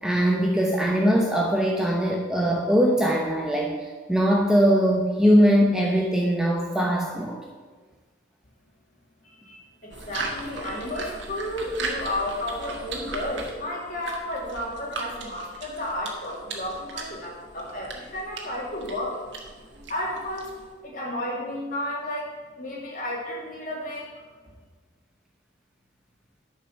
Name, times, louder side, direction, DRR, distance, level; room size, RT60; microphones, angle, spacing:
voice 1, 0.0-7.4, equal, 5° right, -1 dB, 0.8 m, -21 dB
voice 2, 9.2-19.2 19.9-20.5 20.8-22.3 22.6-24.1, left 1 dB, 45° left, -4 dB, 2.8 m, -32 dB
sound 1, 9.9-20.8, right 3 dB, 65° right, 1.6 m, -38 dB
10.5 x 5.6 x 6.5 m, 1.4 s
head